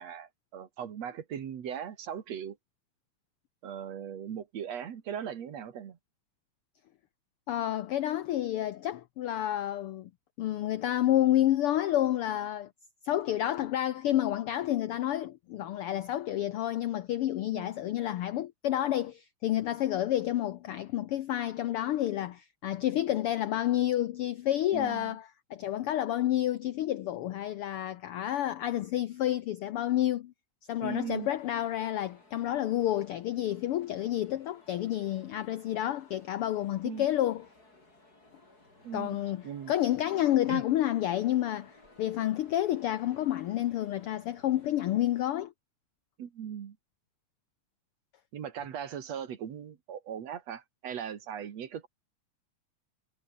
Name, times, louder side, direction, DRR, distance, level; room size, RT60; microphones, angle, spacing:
voice 1, 0.0-2.6 3.6-6.0 17.5-17.7 24.7-25.2 30.8-31.3 36.8-37.1 38.8-39.2 39.4-39.7 40.5-40.6 46.2-46.8 48.3-51.9, right 8 dB, 65° right, 2.9 m, -39 dB
voice 2, 7.5-10.1 10.4-12.7 13.0-30.3 30.7-37.5 38.9-41.7 42.0-45.5, left 12 dB, 80° left, 1.3 m, -29 dB
sound 1, 31.2-45.3, left 2 dB, 30° left, 6.6 m, -58 dB
omnidirectional pair, 3.4 m